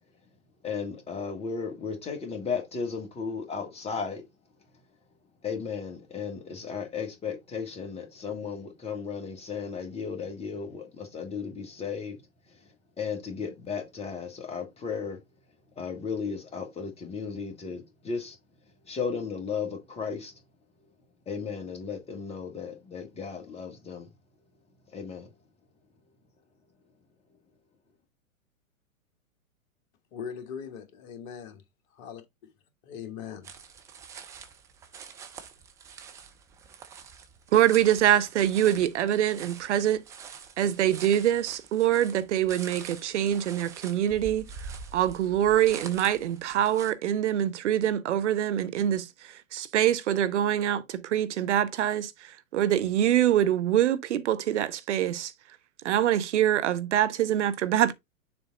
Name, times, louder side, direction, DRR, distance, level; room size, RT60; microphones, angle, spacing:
voice 1, 0.6-4.2 5.4-12.2 13.0-15.2 15.8-18.4 18.9-20.3 21.3-24.1 24.9-25.3, left 5 dB, 15° left, 1.5 m, -35 dB
voice 2, 30.1-31.6 32.0-32.2 32.8-33.5, left 7 dB, 40° left, 1.6 m, -40 dB
sound 1, 33.4-46.9, right 6 dB, 10° right, 0.4 m, -45 dB
voice 3, 37.5-40.0 40.6-44.5 44.9-49.1 49.5-52.1 52.5-55.3 55.8-57.9, right 11 dB, 55° right, 0.9 m, -24 dB
7.1 x 3.5 x 3.8 m
figure-of-eight pair, 110°, 41 cm